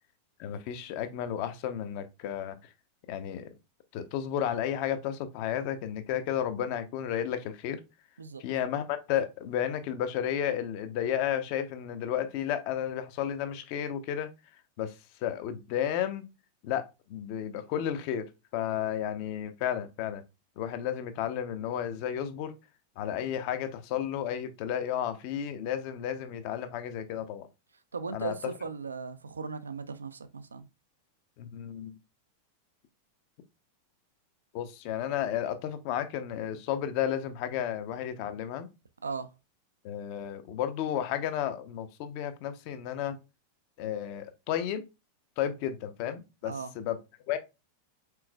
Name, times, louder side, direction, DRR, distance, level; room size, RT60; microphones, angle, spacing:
voice 1, 0.4-2.6 3.1-3.5 3.9-7.8 8.4-14.3 14.8-14.9 15.2-16.2 16.6-18.3 18.5-20.2 20.6-22.5 23.0-27.5 28.1-28.3 31.4-31.9 34.5-38.7 39.8-43.2 43.8-44.8 45.4-47.0 47.3-47.4, left 10 dB, 45° left, 0.6 m, -32 dB
voice 2, 27.9-30.7 39.0-39.3 46.5-46.7, right 5 dB, 75° right, 0.4 m, -37 dB
4.5 x 3.8 x 2.2 m
figure-of-eight pair, 90°, 0 cm